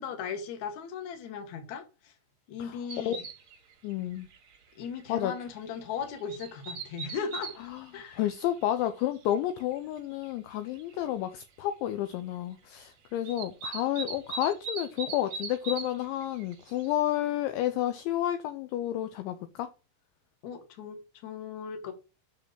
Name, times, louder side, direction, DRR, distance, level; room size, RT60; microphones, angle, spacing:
voice 1, 0.0-2.1 2.5-3.2 4.8-7.6 7.9-8.2 20.4-21.9, left 6 dB, 55° left, 2.3 m, -37 dB
sound 1, 2.9-3.6 3.9-4.0 4.3-4.6 5.0-5.1 6.0-7.6 8.3-8.4 9.6-9.7 10.2-10.3 10.5-10.9 13.3-16.0 16.2-16.9, right 4 dB, 60° right, 1.8 m, -39 dB
voice 2, 3.8-4.3 5.1-5.3 7.7-7.9 8.2-19.7, left 12 dB, 80° left, 2.8 m, -30 dB
8.4 x 6.2 x 6.1 m
omnidirectional pair, 5.8 m